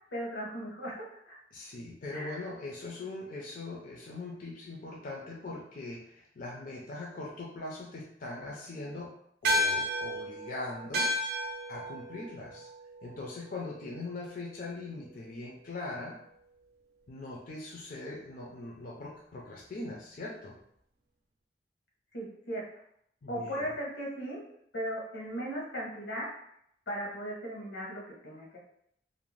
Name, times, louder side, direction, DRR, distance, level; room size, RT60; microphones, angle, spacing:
voice 1, 0.1-1.4 2.1-2.4 22.1-22.6 23.3-24.4 24.7-26.3 26.9-28.6, equal, 85° left, -3 dB, 0.9 m, -37 dB
voice 2, 1.5-9.1 9.4-12.7 13.0-16.2 17.1-20.6 23.2-23.7, left 2 dB, 50° left, -3 dB, 0.4 m, -41 dB
sound 1, 9.4-14.1, equal, 60° right, 0.5 m, -33 dB
2.5 x 2.1 x 3.0 m, 0.71 s
head